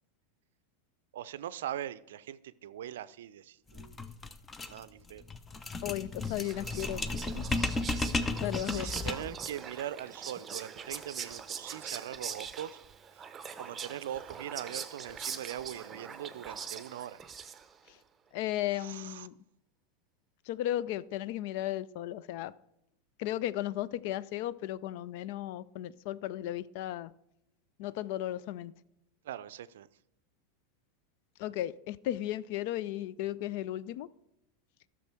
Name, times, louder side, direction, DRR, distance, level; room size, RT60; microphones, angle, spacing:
voice 1, 1.1-4.0 4.7-5.2 8.3-8.4 8.7-12.8 13.1-13.3 13.6-17.2 18.7-19.3 29.2-29.9, right 11 dB, 70° right, 0.5 m, -41 dB
sound 1, 3.7-9.4, left 2 dB, 20° left, 0.7 m, -34 dB
voice 2, 5.8-7.0 7.3-7.5 7.8-7.9 8.4-8.9 17.9-18.0 18.3-19.3 20.5-22.5 23.2-27.1 27.8-28.7 31.4-34.1, left 13 dB, 60° left, 0.4 m, -35 dB
Whispering, 5.9-17.9, right 7 dB, 25° right, 0.7 m, -43 dB
13.5 x 6.3 x 4.5 m
hypercardioid pair, 90°, 0 cm